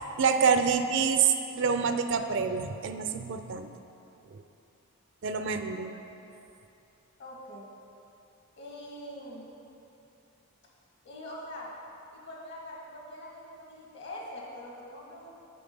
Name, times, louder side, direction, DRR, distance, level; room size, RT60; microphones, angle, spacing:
voice 1, 0.2-3.7 4.3-4.4 5.2-5.9, right 6 dB, 55° right, 8 dB, 0.4 m, -27 dB
voice 2, 5.4-5.9 7.2-7.7 8.6-9.5 11.0-11.7 12.1-15.3, left 1 dB, 55° left, -3 dB, 1.7 m, -43 dB
7.1 x 6.9 x 5.3 m, 2.9 s
head